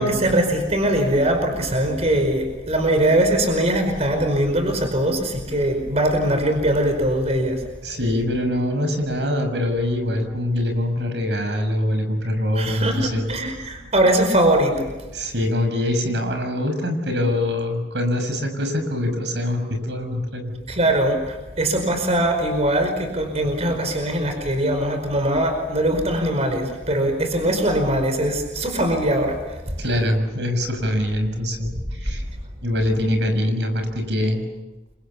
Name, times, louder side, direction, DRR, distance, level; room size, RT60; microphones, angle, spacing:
voice 1, 0.0-7.6 12.6-14.9 20.7-29.7, right 1 dB, 40° right, 6 dB, 5.0 m, -21 dB
voice 2, 7.8-13.2 15.1-20.5 29.8-32.2 32.6-34.4, left 1 dB, 75° right, 5 dB, 6.4 m, -24 dB
29.5 x 25.5 x 7.1 m, 1.1 s
head